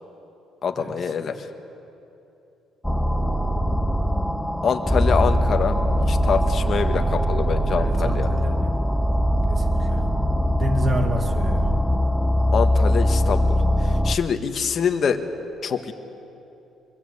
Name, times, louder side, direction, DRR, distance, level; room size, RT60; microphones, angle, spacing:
voice 1, 0.6-1.3 4.6-5.8 6.1-8.3 12.5-13.5 13.8-15.2 15.6-15.9, left 6 dB, 40° left, 6 dB, 1.4 m, -25 dB
sound 1, 2.8-14.2, equal, 5° left, 0.5 m, -21 dB
voice 2, 7.8-8.7 9.5-10.0 10.6-11.6, right 1 dB, 25° right, 5 dB, 2.3 m, -29 dB
24.0 x 22.5 x 8.6 m, 2.9 s
cardioid pair, 145°, 0 cm